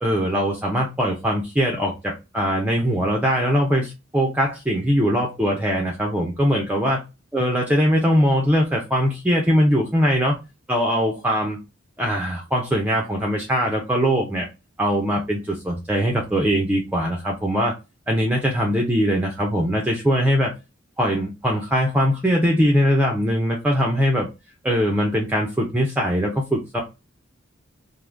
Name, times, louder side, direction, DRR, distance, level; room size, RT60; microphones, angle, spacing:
voice 1, 0.0-7.0 7.3-10.4 10.7-11.6 12.0-14.5 14.8-17.7 18.1-20.5 21.0-24.3 24.6-26.8, equal, 10° right, 0.5 m, -21 dB
3.5 x 2.6 x 2.5 m
head